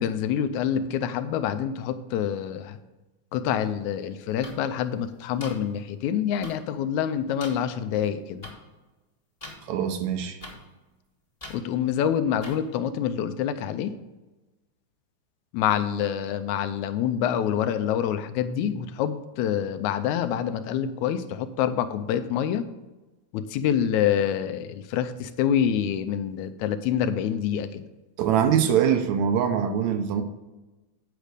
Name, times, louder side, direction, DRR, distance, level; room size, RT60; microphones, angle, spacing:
voice 1, 0.0-2.8 3.3-8.5 11.5-13.9 15.5-22.6 23.3-27.9, left 9 dB, 80° left, 10 dB, 1.9 m, -26 dB
sound 1, 4.4-4.5 5.4-5.5 6.4-6.5 7.4-7.5 8.4-8.5 9.4-9.5 10.4-10.5 11.4-11.6 12.4-12.5, left 2 dB, 20° left, 1.0 m, -39 dB
voice 2, 9.6-10.4 28.2-30.2, right 8 dB, 75° right, 8 dB, 1.9 m, -23 dB
9.1 x 5.1 x 6.5 m, 1.1 s
omnidirectional pair, 3.5 m